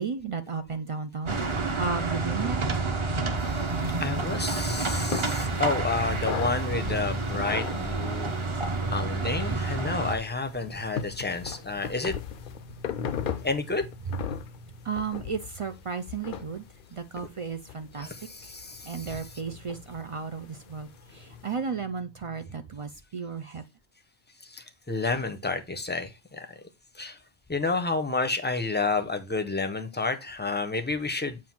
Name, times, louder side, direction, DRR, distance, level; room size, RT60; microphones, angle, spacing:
voice 1, 0.0-2.6 12.8-13.1 14.8-16.7 16.9-18.1 18.8-23.6, right 5 dB, 50° right, 0.4 m, -34 dB
sound 1, 1.3-10.2, right 3 dB, 30° right, 0.8 m, -29 dB
sound 2, 3.7-21.5, left 8 dB, 60° left, 0.7 m, -40 dB
voice 2, 4.0-8.3 8.9-12.2 13.4-13.8 18.0-19.2 24.5-26.5 27.0-27.2 27.5-31.4, left 3 dB, 10° left, 0.6 m, -30 dB
7.4 x 2.6 x 5.8 m
omnidirectional pair, 1.1 m